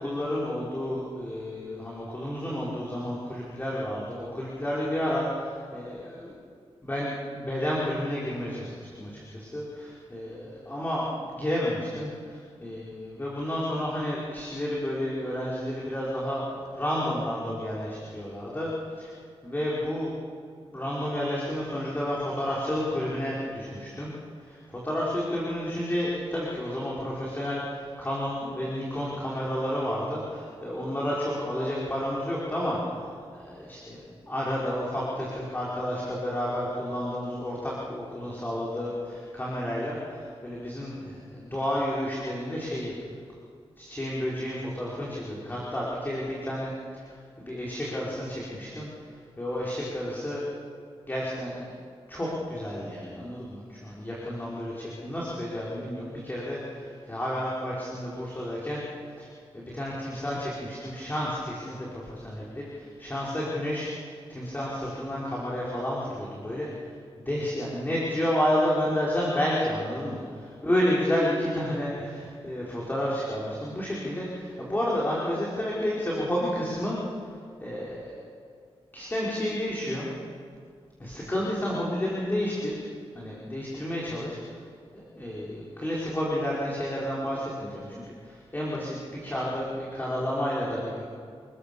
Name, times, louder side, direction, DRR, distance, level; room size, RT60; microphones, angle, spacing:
voice 1, 0.0-6.3 6.8-18.7 18.9-19.1 19.4-20.1 20.7-24.1 24.4-33.0 33.3-42.9 43.8-48.9 49.4-50.4 51.0-51.7 52.1-58.8 59.2-59.3 59.5-63.9 64.3-66.7 67.2-70.2 70.6-77.0 77.6-78.2 78.9-80.1 81.0-82.8 83.1-84.4 84.9-91.0, equal, 20° left, -6 dB, 5.2 m, -31 dB
29.0 x 21.0 x 7.1 m, 2.2 s
wide cardioid pair, 95°, 10 cm